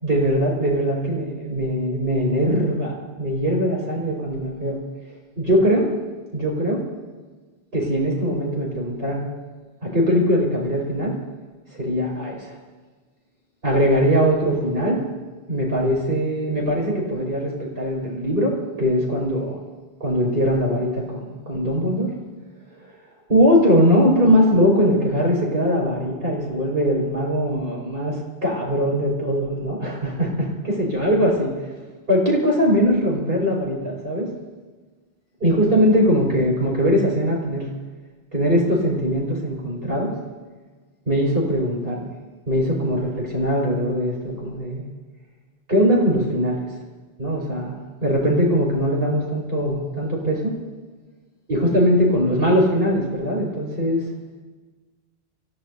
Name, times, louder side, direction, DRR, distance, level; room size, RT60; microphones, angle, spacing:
voice 1, 0.0-4.8 5.4-5.9 6.3-6.9 7.7-9.3 9.8-11.2 11.7-12.6 13.6-15.1 15.5-19.6 20.0-22.1 23.3-31.5 32.1-34.3 35.4-37.7 38.3-40.1 41.1-42.1 42.5-44.9 45.7-46.7 47.2-50.5 51.5-54.1, equal, 65° right, -2 dB, 5.4 m, -21 dB
28.0 x 16.5 x 2.7 m, 1.3 s
omnidirectional pair, 1.0 m